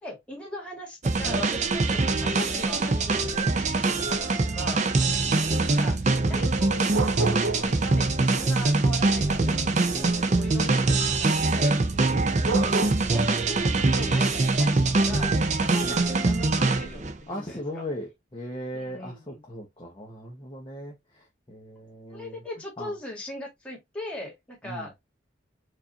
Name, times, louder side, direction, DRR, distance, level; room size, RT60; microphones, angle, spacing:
voice 1, 0.0-4.9 5.7-6.0 6.3-11.8 12.6-12.8 13.1-17.8 18.7-19.4 22.1-24.9, left 1 dB, 5° left, 1.7 m, -39 dB
sound 1, 1.0-17.2, right 3 dB, 40° right, 0.5 m, -23 dB
voice 2, 5.0-5.4 9.9-10.2 12.1-12.4 15.8-16.1 17.3-22.4 22.8-22.9 24.6-24.9, equal, 25° left, 0.9 m, -38 dB
sound 2, 6.5-7.8 8.1-10.5 12.1-12.2 12.4-12.9, right 4 dB, 85° right, 0.7 m, -30 dB
4.8 x 2.6 x 2.6 m
head